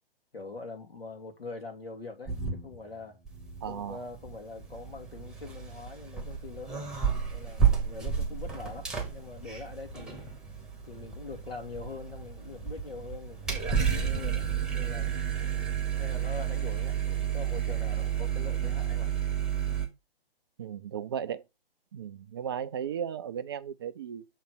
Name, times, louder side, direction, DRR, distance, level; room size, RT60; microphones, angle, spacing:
voice 1, 0.3-3.2 3.7-6.9 7.3-10.3 10.8-15.2 16.0-19.1, left 4 dB, 75° left, 2.2 m, -43 dB
sound 1, 2.3-3.0 3.3-19.9, right 8 dB, ahead, 1.0 m, -32 dB
voice 2, 3.6-4.0 20.6-21.4 21.9-24.3, right 8 dB, 25° right, 0.4 m, -35 dB
6.8 x 3.2 x 5.9 m
figure-of-eight pair, 130°, 30 cm